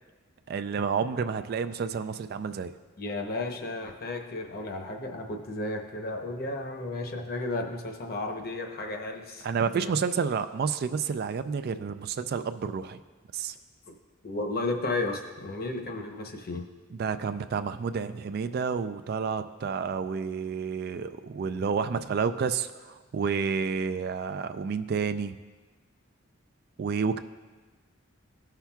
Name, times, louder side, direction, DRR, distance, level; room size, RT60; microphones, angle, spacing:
voice 1, 0.5-2.7 9.4-13.0 13.3-13.5 16.9-25.4 26.8-27.2, right 6 dB, 50° right, 10 dB, 0.3 m, -30 dB
voice 2, 3.0-9.5 9.8-9.9 13.9-14.0 14.2-16.6, left 2 dB, 45° left, 3 dB, 0.8 m, -33 dB
16.5 x 5.8 x 2.3 m, 1.3 s
head